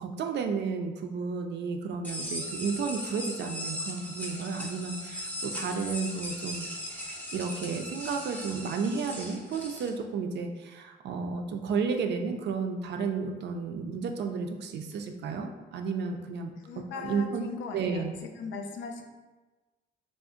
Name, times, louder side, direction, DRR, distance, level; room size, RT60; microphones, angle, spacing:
voice 1, 0.0-16.5 16.9-17.4 17.7-18.1, right 5 dB, 60° right, 4 dB, 0.4 m, -32 dB
sound 1, 2.0-9.9, equal, 10° left, 0.5 m, -38 dB
voice 2, 16.6-18.0 18.4-19.0, left 5 dB, 75° left, 4 dB, 0.4 m, -38 dB
2.4 x 2.1 x 3.6 m, 1.2 s
cardioid pair, 90°, 20 cm